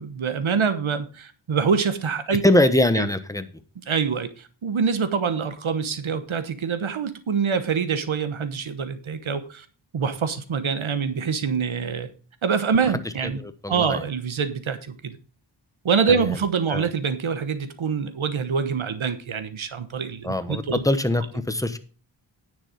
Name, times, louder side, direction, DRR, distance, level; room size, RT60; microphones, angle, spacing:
voice 1, 0.0-2.4 3.0-3.1 3.9-9.6 9.9-12.1 12.4-13.4 13.7-15.2 15.8-20.8, right 6 dB, 90° right, 11 dB, 1.1 m, -25 dB
voice 2, 2.4-3.5 13.2-14.1 16.1-16.3 16.7-16.9 20.2-21.8, left 1 dB, 5° left, 10 dB, 1.0 m, -22 dB
9.9 x 6.8 x 5.1 m, 0.37 s
wide cardioid pair, 60°, 47 cm